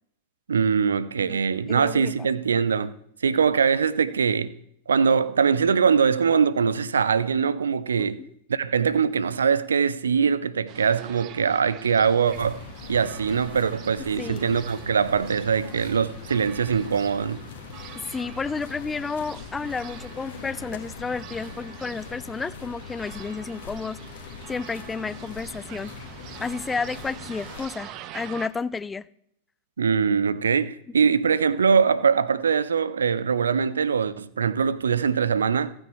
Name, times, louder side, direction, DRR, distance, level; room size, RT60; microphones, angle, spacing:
voice 1, 0.5-2.9 3.2-4.5 4.9-8.2 8.5-12.6 12.9-17.4 29.8-35.7, right 6 dB, 70° right, 0.6 m, -22 dB
voice 2, 1.7-2.3 8.0-8.3 14.2-14.5 18.1-24.0 24.5-25.9 26.4-29.0, left 4 dB, 15° left, 0.4 m, -31 dB
sound 1, 10.7-28.5, right 11 dB, 40° right, 0.9 m, -44 dB
sound 2, 12.3-27.7, left 7 dB, 55° left, 1.6 m, -42 dB
28.5 x 9.7 x 3.3 m
figure-of-eight pair, 90°, 0 cm